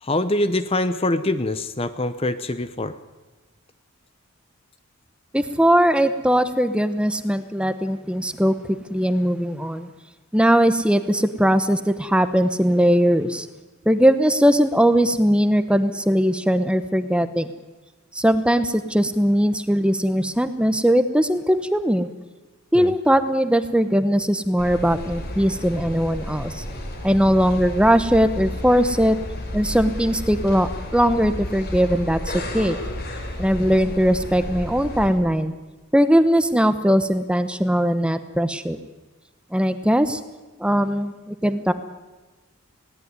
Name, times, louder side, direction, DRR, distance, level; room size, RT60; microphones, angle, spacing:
voice 1, 0.0-2.9 22.7-22.9, left 1 dB, 25° left, 12 dB, 0.7 m, -24 dB
voice 2, 5.3-8.5 8.9-9.9 10.3-13.5 13.9-17.5 18.1-22.1 22.7-26.6 27.0-29.2 29.5-32.8 33.4-35.5 35.9-38.8 39.5-40.2 40.6-41.7, equal, 5° right, 11 dB, 0.9 m, -20 dB
sound 1, 24.6-35.1, left 1 dB, 45° left, 4.2 m, -32 dB
20.5 x 17.5 x 9.6 m, 1.2 s
head